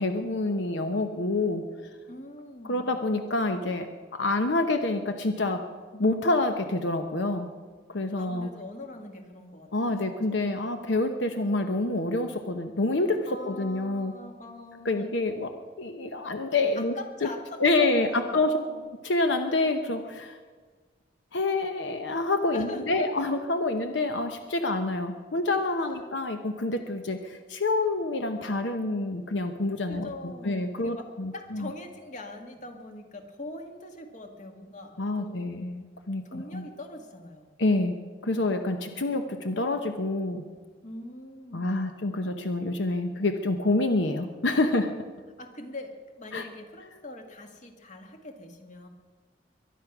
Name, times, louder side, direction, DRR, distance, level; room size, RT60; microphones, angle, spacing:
voice 1, 0.0-1.6 2.6-5.6 5.9-7.5 7.9-8.5 9.7-14.1 14.8-15.5 15.8-16.9 17.2-17.3 17.6-18.6 19.0-20.4 21.3-31.7 35.0-36.7 37.6-38.0 38.2-40.4 41.5-44.9 46.3-46.5, left 2 dB, 80° left, 6 dB, 0.9 m, -27 dB
voice 2, 2.1-2.9 8.2-10.6 13.3-15.4 16.8-18.9 22.5-23.1 25.8-26.0 29.9-35.5 36.3-37.6 40.8-41.9 45.4-48.9, left 2 dB, 45° left, 4 dB, 1.8 m, -42 dB
23.0 x 10.5 x 6.0 m, 1.5 s
head